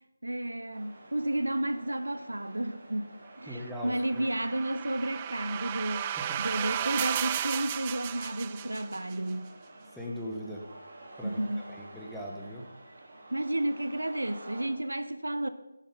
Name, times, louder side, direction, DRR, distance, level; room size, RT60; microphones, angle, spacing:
voice 1, 0.2-6.1 6.4-9.5 11.2-11.6 13.3-15.5, right 1 dB, 80° right, 0.9 m, -32 dB
sound 1, 0.7-14.7, right 2 dB, 40° right, 3.6 m, -50 dB
voice 2, 3.5-4.3 6.2-6.4 9.9-10.6 11.2-11.4 11.7-12.7, equal, ahead, 1.3 m, -39 dB
sound 2, 3.9-9.1, right 10 dB, 20° right, 0.3 m, -34 dB
13.5 x 7.3 x 5.5 m
figure-of-eight pair, 160°, 0 cm